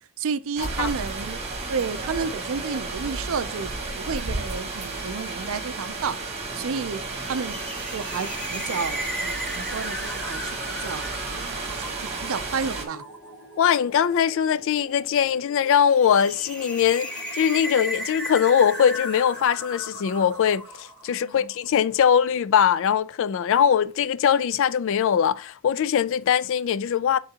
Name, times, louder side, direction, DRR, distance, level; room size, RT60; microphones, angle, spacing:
voice 1, 0.2-1.4 1.7-6.2 6.6-7.6 7.9-13.0 21.2-21.5, right 5 dB, 65° right, 0.5 m, -31 dB
sound 1, 0.6-12.9, right 3 dB, 30° right, 1.2 m, -32 dB
sound 2, 4.4-20.5, left 2 dB, 40° left, 0.9 m, -49 dB
sound 3, 7.1-21.4, equal, 5° left, 1.3 m, -36 dB
voice 2, 13.6-27.2, left 8 dB, 60° left, 0.3 m, -21 dB
8.9 x 3.8 x 2.8 m
head